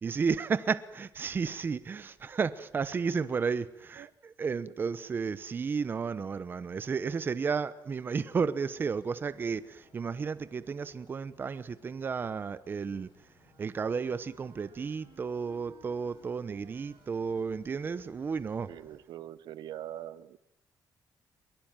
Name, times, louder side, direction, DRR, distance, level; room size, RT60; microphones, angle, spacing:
voice 1, 0.0-13.1 13.6-18.7, right 5 dB, 30° right, 0.9 m, -33 dB
sound 1, 8.8-19.0, left 4 dB, 80° left, 7.3 m, -64 dB
Wind instrument woodwind instrument, 13.4-18.7, right 8 dB, 55° right, 3.4 m, -61 dB
voice 2, 18.7-20.4, right 12 dB, 75° right, 1.0 m, -43 dB
22.5 x 22.5 x 9.0 m
cardioid pair, 170°, 7 cm